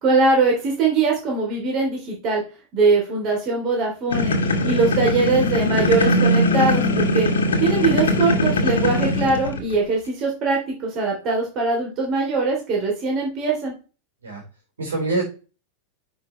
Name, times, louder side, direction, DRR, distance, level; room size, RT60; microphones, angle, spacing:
voice 1, 0.0-2.4 2.7-4.3 4.6-7.3 7.6-13.7, right 3 dB, 35° right, -1 dB, 3.3 m, -21 dB
sound 1, 4.1-9.7, left 1 dB, 65° left, 1.5 m, -20 dB
voice 2, 7.6-8.0 14.2-14.4 14.8-15.2, right 2 dB, 70° right, -1 dB, 5.0 m, -26 dB
10.0 x 6.3 x 3.3 m, 0.34 s
figure-of-eight pair, 90°, 0 cm